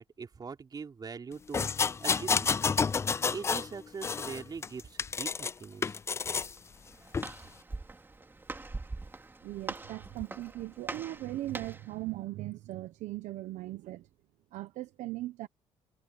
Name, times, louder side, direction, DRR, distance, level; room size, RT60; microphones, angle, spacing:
voice 1, 0.0-1.7 2.0-2.6 3.3-6.0, right 5 dB, 30° right, 3.8 m, -42 dB
sound 1, 1.5-3.7 4.0-5.5 5.8-6.5 7.1-7.3, left 5 dB, 20° left, 0.3 m, -30 dB
Walk footsteps, 6.6-11.9, right 3 dB, 15° right, 2.7 m, -43 dB
voice 2, 9.4-14.1 14.5-15.5, right 16 dB, 75° right, 1.0 m, -39 dB
cardioid pair, 100°, 13 cm